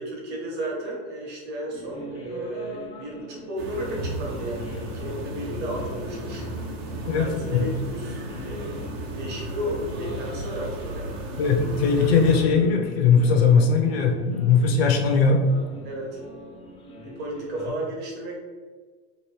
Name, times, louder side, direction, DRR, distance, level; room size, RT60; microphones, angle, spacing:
voice 1, 0.0-6.4 7.1-11.2 15.8-16.2 17.0-18.4, right 1 dB, 30° right, -2 dB, 1.0 m, -33 dB
sound 1, 1.7-17.7, left 1 dB, 15° left, 0.4 m, -41 dB
sound 2, 3.6-12.4, right 1 dB, 60° right, 0.9 m, -34 dB
voice 2, 7.0-7.7 11.4-15.4, left 5 dB, 65° left, 2 dB, 0.7 m, -20 dB
3.0 x 2.6 x 3.1 m, 1.5 s
hypercardioid pair, 125°, 33 cm